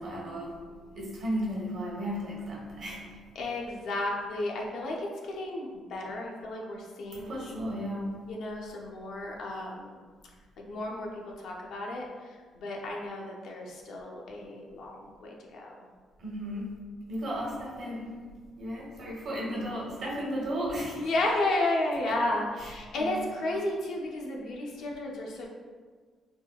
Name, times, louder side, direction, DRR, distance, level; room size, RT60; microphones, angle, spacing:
voice 1, 0.0-0.5 1.0-3.1 7.1-8.2 16.2-16.8 17.1-18.1 18.6-21.1 22.0-22.1 22.6-23.3, equal, 50° right, -5 dB, 0.8 m, -34 dB
voice 2, 0.7-1.0 3.3-7.4 8.3-10.0 10.6-15.7 20.9-25.5, left 2 dB, 70° left, -1 dB, 0.5 m, -33 dB
3.5 x 2.1 x 2.2 m, 1.5 s
cardioid pair, 155°, 0 cm